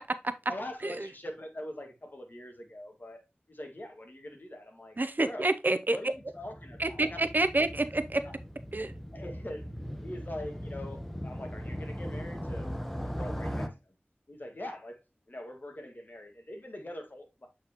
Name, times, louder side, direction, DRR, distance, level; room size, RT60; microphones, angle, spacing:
voice 1, 0.5-3.2 3.5-5.0 5.2-5.5 5.9-7.2 8.2-8.4 9.1-9.7 10.0-12.7 13.1-14.0 14.3-15.0 15.3-17.5, left 1 dB, 50° left, 1.9 m, -43 dB
voice 2, 5.0-6.0 6.8-8.2 8.7-8.9, right 2 dB, 50° right, 0.6 m, -28 dB
Motorcycle, 6.1-13.7, equal, 5° left, 1.0 m, -39 dB
7.8 x 4.6 x 3.0 m
wide cardioid pair, 55°, 4 cm